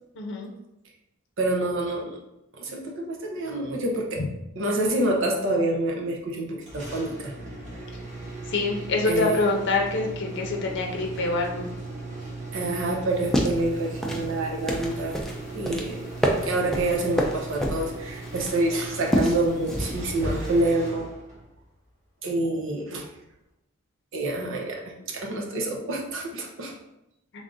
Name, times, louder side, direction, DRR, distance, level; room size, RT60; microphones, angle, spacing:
voice 1, 0.2-0.5 4.2-4.3 8.5-11.7, left 3 dB, 60° left, 1 dB, 0.6 m, -25 dB
voice 2, 1.4-2.2 2.5-4.2 4.6-7.3 9.1-9.3 12.5-15.2 15.5-16.0 16.4-21.1 22.2-23.1 24.1-24.8 25.1-26.7, right 2 dB, 65° right, 0 dB, 0.7 m, -27 dB
sound 1, 6.6-21.6, right 2 dB, 35° right, 1.0 m, -38 dB
sound 2, 13.1-20.6, equal, ahead, 0.4 m, -29 dB
3.5 x 2.5 x 3.7 m, 0.88 s
head